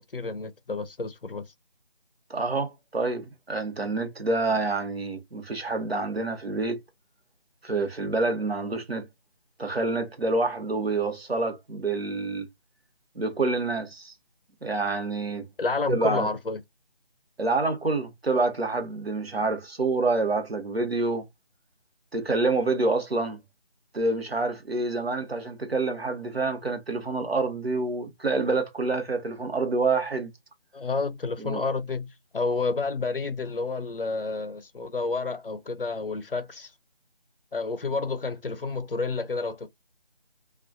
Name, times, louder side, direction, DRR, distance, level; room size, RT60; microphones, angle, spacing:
voice 1, 0.0-1.5 15.6-16.6 30.7-36.7 37.5-39.7, left 3 dB, 60° left, 0.5 m, -30 dB
voice 2, 2.3-6.8 7.6-9.1 9.6-12.5 13.1-14.1 14.6-15.4 15.9-16.3 17.4-21.2 22.1-23.4 23.9-30.3 31.4-31.6, right 3 dB, 70° right, 1.0 m, -27 dB
2.3 x 2.1 x 2.5 m
figure-of-eight pair, 160°, 31 cm